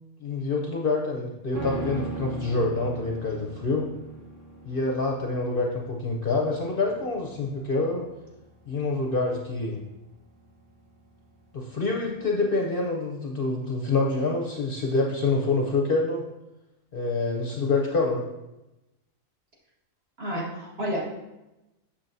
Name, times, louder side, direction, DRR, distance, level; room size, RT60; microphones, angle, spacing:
voice 1, 0.2-3.9 4.6-8.1 8.7-9.8 11.5-16.2 16.9-18.2, left 3 dB, 50° left, 0 dB, 0.8 m, -26 dB
sound 1, 1.5-10.9 11.2-11.3, right 2 dB, 15° right, 1.0 m, -39 dB
voice 2, 20.2-21.0, equal, 50° right, -5 dB, 2.2 m, -30 dB
7.3 x 6.8 x 2.7 m, 0.97 s
omnidirectional pair, 1.4 m